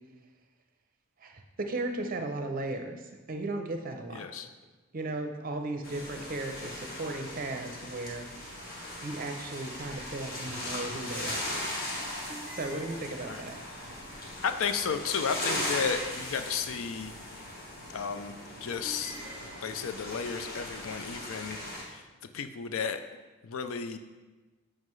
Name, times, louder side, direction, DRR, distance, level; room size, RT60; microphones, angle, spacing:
voice 1, 1.2-4.3 4.9-8.3 9.0-11.6 12.5-13.6, right 2 dB, 40° right, 5 dB, 0.6 m, -36 dB
voice 2, 4.1-4.5 13.3-13.4 14.4-17.1 17.9-19.2 19.6-21.6 21.8-22.0 22.3-23.0 23.4-24.0, left 6 dB, 70° left, 9 dB, 0.4 m, -33 dB
sound 1, 5.8-21.8, left 1 dB, 45° left, 1.3 m, -38 dB
sound 2, 12.3-13.6 15.6-16.9 18.8-20.1, right 1 dB, 5° right, 0.6 m, -48 dB
7.5 x 4.9 x 3.1 m, 1.2 s
head